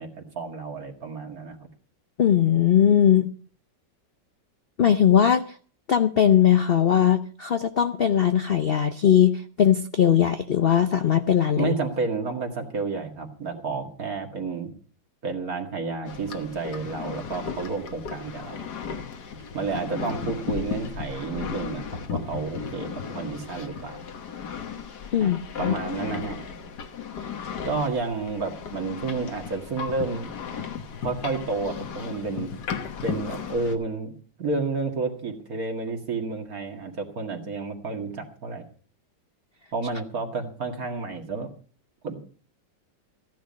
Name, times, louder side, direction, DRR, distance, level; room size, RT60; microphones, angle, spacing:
voice 1, 0.0-1.6 11.6-14.7 15.2-18.6 19.5-24.0 25.2-25.3 25.6-26.4 27.6-30.3 31.0-32.5 33.0-34.1 34.4-38.6 39.7-41.5 42.0-42.1, right 4 dB, 55° right, 3 dB, 2.4 m, -30 dB
voice 2, 2.2-3.3 4.8-5.6 5.9-11.7 25.1-25.8 27.2-27.3, left 9 dB, 85° left, 8 dB, 0.5 m, -20 dB
sound 1, 16.0-33.8, left 6 dB, 65° left, 1.8 m, -35 dB
15.0 x 10.5 x 5.2 m, 0.43 s
omnidirectional pair, 1.9 m